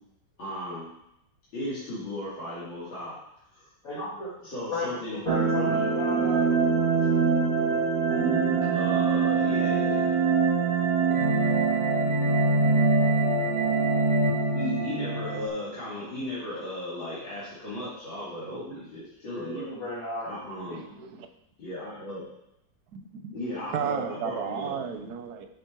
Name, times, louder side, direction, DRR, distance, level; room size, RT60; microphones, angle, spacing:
voice 1, 0.4-0.9 1.5-3.1 3.5-3.7 4.4-5.2 5.5-5.7 8.7-10.1 11.7-11.8 14.5-19.7 20.2-20.8 21.6-22.2 23.3-24.9, left 1 dB, 75° left, -11 dB, 3.4 m, -36 dB
voice 2, 3.8-4.3 4.7-6.4 18.7-18.8 19.3-20.3, left 2 dB, 45° left, -9 dB, 2.6 m, -34 dB
sound 1, 5.3-15.5, right 4 dB, 35° right, 1.0 m, -24 dB
voice 3, 20.7-21.3 22.9-23.3 23.7-25.5, right 7 dB, 65° right, 8 dB, 1.1 m, -33 dB
9.0 x 5.8 x 4.5 m, 0.80 s
omnidirectional pair, 2.1 m